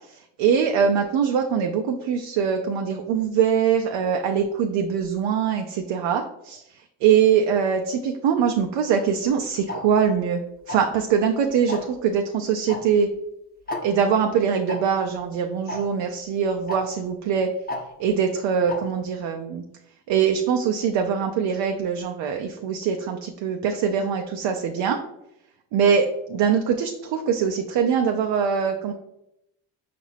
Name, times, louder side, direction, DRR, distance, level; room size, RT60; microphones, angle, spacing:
voice 1, 0.1-10.4 10.7-13.1 13.8-17.5 18.0-19.6 20.1-25.0 25.7-28.9, right 7 dB, 70° right, 4 dB, 0.5 m, -23 dB
Tick-tock, 9.7-9.8 10.7-11.0 11.7-11.9 12.7-12.8 13.1-13.2 13.7-13.8 14.7-14.8 15.7-15.8 16.7-16.8 17.7-17.8 18.7-18.8, left 2 dB, 20° left, 0.8 m, -30 dB
5.2 x 2.5 x 3.3 m, 0.83 s
cardioid pair, 80°, 45 cm